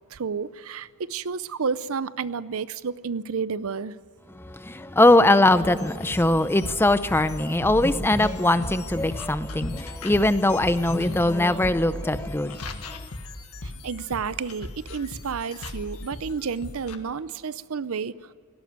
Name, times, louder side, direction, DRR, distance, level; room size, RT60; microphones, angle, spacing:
voice 1, 0.1-4.0 13.6-18.3, right 5 dB, 65° right, 0.6 m, -31 dB
voice 2, 4.3-12.6 12.9-13.0, left 1 dB, 10° left, 0.6 m, -21 dB
sound 1, 5.5-17.0, left 2 dB, 75° left, 1.7 m, -37 dB
18.5 x 17.0 x 9.4 m
head